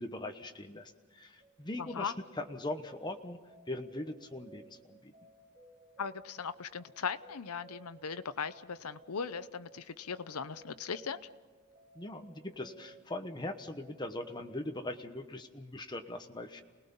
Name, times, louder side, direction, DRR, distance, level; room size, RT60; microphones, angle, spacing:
voice 1, 0.0-3.4 3.7-5.1 11.9-16.6, left 1 dB, 20° left, 6 dB, 1.1 m, -41 dB
sound 1, 1.4-14.6, right 2 dB, 45° right, 3.6 m, -59 dB
voice 2, 1.8-2.1 6.0-11.2, left 6 dB, 90° left, 12 dB, 0.8 m, -38 dB
29.0 x 19.5 x 5.5 m, 1.4 s
head